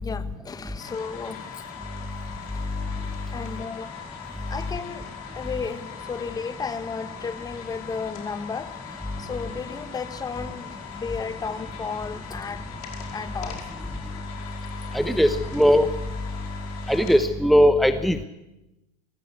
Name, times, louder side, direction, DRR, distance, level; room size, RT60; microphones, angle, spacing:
voice 1, 0.0-1.6 3.3-4.0 4.5-5.1 5.3-12.7 13.1-13.6, left 5 dB, 20° left, 1.4 m, -34 dB
sound 1, 0.8-17.2, left 8 dB, 65° left, 5.1 m, -41 dB
voice 2, 14.9-15.9 16.9-18.2, equal, ahead, 0.9 m, -19 dB
23.5 x 16.0 x 8.3 m
supercardioid pair, 115°, 20 cm